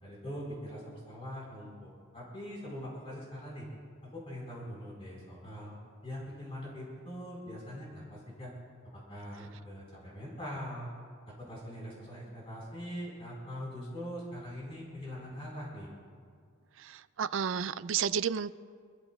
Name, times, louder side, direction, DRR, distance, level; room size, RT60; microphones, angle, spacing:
voice 1, 0.0-3.7 4.1-5.7 6.0-8.5 8.9-10.9 11.4-15.9, equal, 30° left, -5 dB, 4.3 m, -42 dB
voice 2, 16.8-18.5, right 7 dB, 65° right, 14 dB, 0.4 m, -32 dB
28.5 x 14.5 x 2.3 m, 2.1 s
head